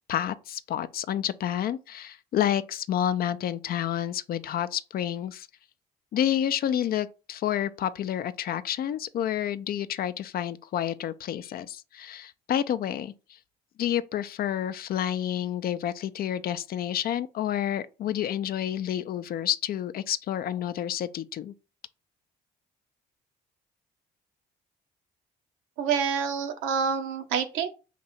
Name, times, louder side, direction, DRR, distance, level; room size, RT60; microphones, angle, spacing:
voice 1, 0.1-5.5 6.1-13.1 13.8-21.5, left 10 dB, 45° left, 0.4 m, -29 dB
voice 2, 25.8-27.7, right 6 dB, 70° right, 0.7 m, -27 dB
2.9 x 2.6 x 4.3 m
hypercardioid pair, 50°, 21 cm